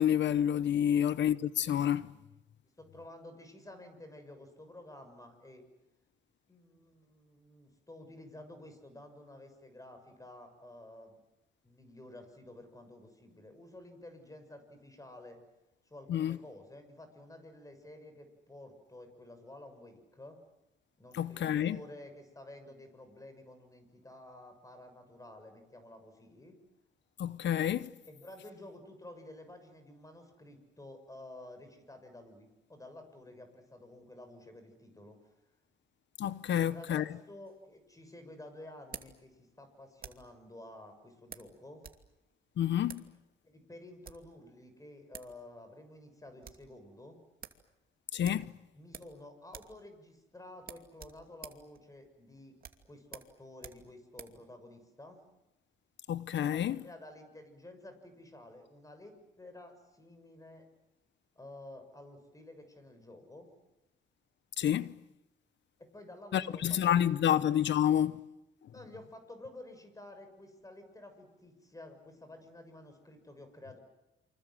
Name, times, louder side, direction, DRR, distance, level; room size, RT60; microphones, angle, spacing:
voice 1, 0.0-2.1 16.1-16.4 21.1-21.8 27.2-27.9 36.2-37.0 42.6-43.0 48.1-48.5 56.1-56.8 64.6-64.9 66.3-68.2, left 10 dB, 65° left, 0.9 m, -29 dB
voice 2, 2.8-5.6 6.5-11.2 11.6-15.4 15.8-20.4 21.0-26.6 28.1-35.2 36.5-41.8 43.4-47.2 48.7-52.6 52.8-55.2 56.4-60.7 61.3-63.5 65.8-67.4 68.7-73.8, left 1 dB, 15° left, 6.8 m, -51 dB
sound 1, 37.4-40.4 41.3-42.0 42.3-42.4 42.8-43.1 43.8-44.3 44.9-45.0 45.1-45.4 45.7-45.8 46.1-46.7 47.0-47.1 47.4-47.6 48.2-49.2 49.5-49.8 50.1-50.2 50.6-54.4, right 7 dB, 45° right, 2.6 m, -50 dB
28.5 x 25.5 x 7.8 m
cardioid pair, 90°, 20 cm